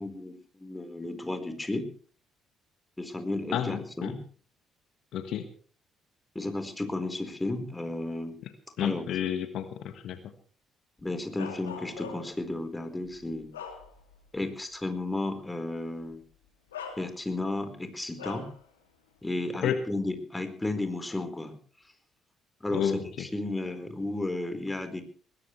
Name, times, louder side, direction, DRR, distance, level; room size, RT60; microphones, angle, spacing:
voice 1, 0.0-1.9 3.0-4.2 6.3-8.4 8.8-9.0 11.0-13.5 14.3-16.2 17.0-18.5 19.2-21.5 22.6-25.0, left 2 dB, 15° left, 8 dB, 4.5 m, -33 dB
voice 2, 3.5-4.1 5.1-5.5 8.8-10.2 19.6-19.8 22.7-23.3, left 9 dB, 65° left, 9 dB, 1.4 m, -30 dB
Bark, 11.4-12.4 13.0-14.3 14.7-14.9 16.0-16.1 16.7-17.5 18.2-18.6, left 6 dB, 90° left, 2.7 m, -42 dB
21.0 x 18.5 x 3.3 m, 0.42 s
hypercardioid pair, 50°, 0 cm